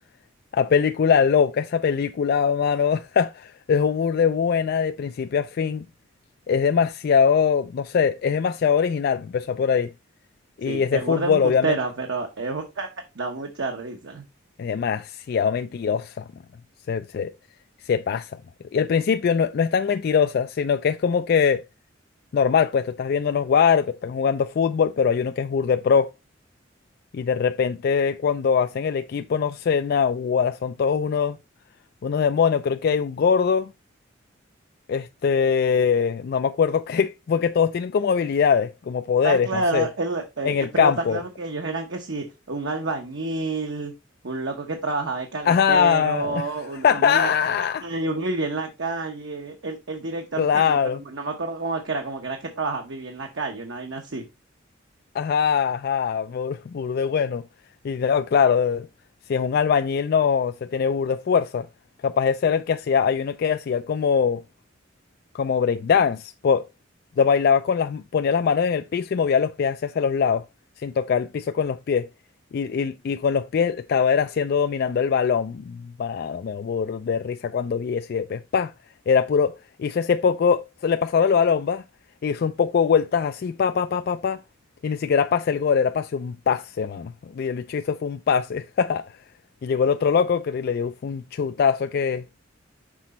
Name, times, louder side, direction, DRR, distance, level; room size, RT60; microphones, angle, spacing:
voice 1, 0.5-5.8 6.5-9.9 10.6-11.7 14.6-16.2 16.9-17.3 17.8-18.3 18.7-21.6 22.3-26.1 27.1-31.4 32.0-33.7 34.9-39.5 39.7-39.8 40.4-41.2 45.5-46.4 46.8-47.9 50.4-51.0 55.1-57.4 57.8-58.9 59.3-61.7 62.0-64.4 65.3-66.7 67.2-70.4 70.8-72.1 72.5-78.7 79.1-79.5 79.8-81.8 82.2-84.4 84.8-89.1 89.6-92.2, left 6 dB, 50° left, 0.3 m, -22 dB
voice 2, 10.7-12.9 13.1-14.2 39.2-43.9 44.2-47.3 47.8-50.8 51.0-54.2, right 3 dB, 70° right, 1.0 m, -29 dB
6.1 x 5.0 x 4.1 m
head